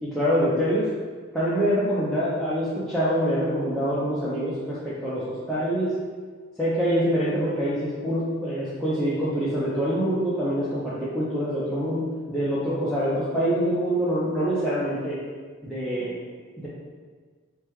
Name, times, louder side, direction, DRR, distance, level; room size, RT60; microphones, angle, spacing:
voice 1, 0.0-0.9 1.3-5.9 6.6-15.2 15.6-16.2 16.6-16.7, equal, ahead, -11 dB, 0.5 m, -25 dB
5.0 x 2.2 x 3.0 m, 1.5 s
head